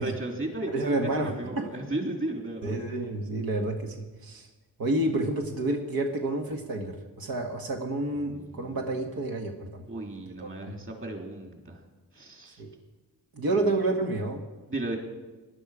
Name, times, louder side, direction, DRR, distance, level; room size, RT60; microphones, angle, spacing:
voice 1, 0.0-2.9 8.2-8.8 9.9-11.8 12.1-12.6 13.5-13.7 14.7-15.0, right 2 dB, 35° right, 1 dB, 3.1 m, -35 dB
voice 2, 0.7-1.3 1.6-1.7 2.6-4.5 4.8-9.8 10.4-10.8 12.6-12.7 13.3-14.4, right 2 dB, 85° right, 1 dB, 1.6 m, -29 dB
19.5 x 11.5 x 4.9 m, 1.2 s
cardioid pair, 90°, 34 cm